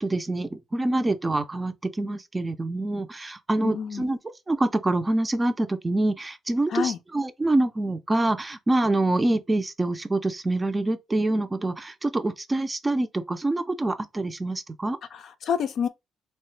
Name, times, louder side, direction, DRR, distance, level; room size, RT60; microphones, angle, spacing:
voice 1, 0.0-15.0, right 2 dB, 20° right, 0.4 m, -26 dB
voice 2, 3.6-4.1 6.7-7.0 15.1-15.9, left 7 dB, 65° left, 0.4 m, -28 dB
3.0 x 2.1 x 3.1 m
cardioid pair, 90°, 0 cm